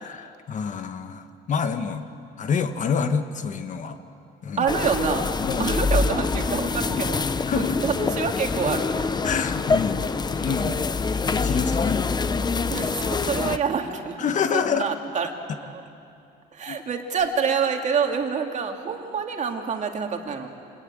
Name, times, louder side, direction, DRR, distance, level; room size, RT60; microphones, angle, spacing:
voice 1, 0.0-2.1 2.4-4.0 4.4-4.7 5.4-5.8 7.0-7.1 7.5-7.8 9.2-10.1 10.3-10.9 11.2-12.1 14.2-14.9 16.7-16.8, left 6 dB, 45° left, 8 dB, 1.4 m, -27 dB
voice 2, 4.6-5.3 5.6-7.2 7.5-9.1 12.7-15.3 15.7-15.8 16.5-20.5, right 6 dB, 45° right, 3 dB, 2.6 m, -27 dB
sound 1, 4.7-13.6, left 4 dB, 25° left, 0.8 m, -25 dB
26.0 x 20.0 x 9.0 m, 2.6 s
cardioid pair, 110°, 17 cm